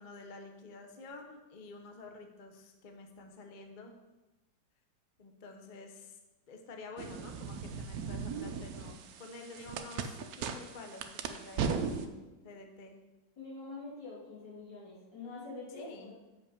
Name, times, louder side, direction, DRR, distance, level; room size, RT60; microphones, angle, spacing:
voice 1, 0.0-4.0 5.2-6.2 6.5-13.0 15.7-16.1, left 3 dB, 50° left, 4 dB, 0.6 m, -49 dB
sound 1, 7.0-12.1, right 6 dB, 70° right, 0.9 m, -38 dB
voice 2, 13.4-16.2, left 3 dB, 75° left, -8 dB, 3.4 m, -45 dB
7.1 x 5.2 x 5.1 m, 1.1 s
omnidirectional pair, 2.0 m